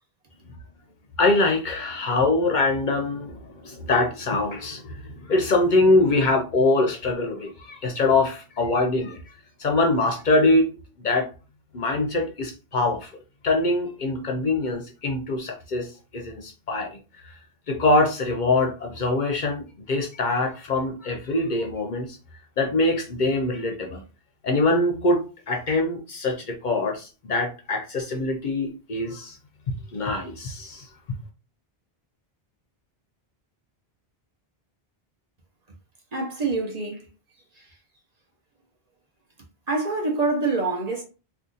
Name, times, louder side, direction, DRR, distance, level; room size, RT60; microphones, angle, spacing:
voice 1, 1.2-9.2 9.6-10.7 11.0-11.3 11.7-13.1 13.4-16.9 17.2-17.3 17.7-22.2 22.6-24.0 24.4-29.4 29.7-31.2, left 2 dB, 55° left, 0.6 m, -23 dB
voice 2, 36.1-37.1 39.7-41.0, right 3 dB, 45° right, 0.8 m, -25 dB
2.6 x 2.4 x 3.7 m
omnidirectional pair, 1.0 m